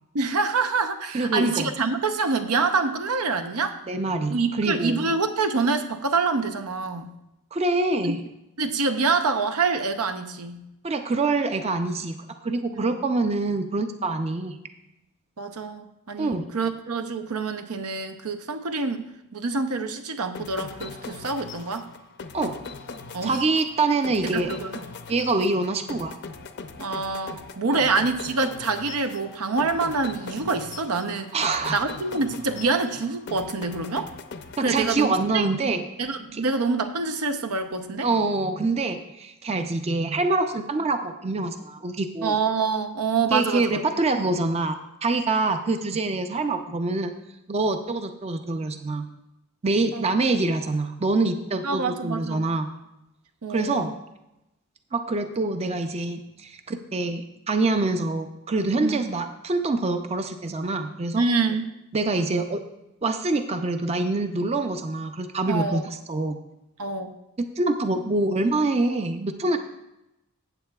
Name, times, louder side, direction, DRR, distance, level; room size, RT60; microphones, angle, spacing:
voice 1, 0.1-3.8 4.3-7.1 8.0-8.1 8.6-10.6 12.7-13.0 15.4-19.0 19.3-21.9 23.1-23.4 24.2-24.8 26.8-31.3 31.7-34.1 34.6-35.5 36.0-38.1 42.2-43.8 49.9-50.1 51.6-52.5 53.4-53.9 58.8-59.0 61.2-61.7 65.5-65.9 66.8-67.1, right 4 dB, 85° right, 8 dB, 0.8 m, -26 dB
voice 2, 1.1-1.7 3.9-5.1 7.5-8.2 10.8-14.6 16.2-16.5 22.3-22.5 23.2-24.5 25.1-26.2 27.7-27.8 31.3-31.8 34.6-35.8 36.3-36.4 38.0-42.4 43.3-47.1 47.5-49.1 49.6-52.7 53.5-53.9 54.9-61.2 61.9-62.6 63.0-65.8 66.1-66.4 67.4-69.6, right 3 dB, 30° right, 7 dB, 0.5 m, -25 dB
sound 1, 20.3-35.6, left 4 dB, 50° left, 0.6 m, -40 dB
15.0 x 8.1 x 2.3 m, 0.91 s
head